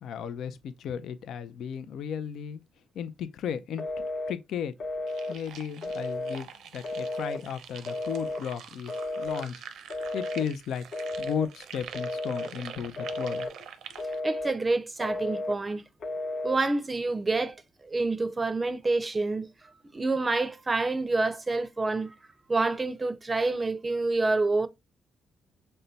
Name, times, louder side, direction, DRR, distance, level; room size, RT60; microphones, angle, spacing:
voice 1, 0.0-2.6 3.0-4.7 5.3-9.6 10.1-10.8 11.2-13.5, left 8 dB, 75° left, 0.4 m, -35 dB
Telephone, 3.8-4.4 4.8-5.4 5.8-6.4 6.8-7.4 7.9-8.4 8.9-9.5 9.9-10.5 10.9-11.5 11.9-12.5 13.0-13.5 14.0-14.6 15.0-15.6 16.0-16.6, left 2 dB, 55° left, 0.9 m, -33 dB
sound 1, 5.1-14.2, right 8 dB, 75° right, 0.6 m, -45 dB
voice 2, 14.2-15.8 16.4-17.6 17.8-19.5 19.9-22.1 22.5-24.7, right 3 dB, 25° right, 0.5 m, -27 dB
5.4 x 2.2 x 3.9 m
cardioid pair, 90°, 0 cm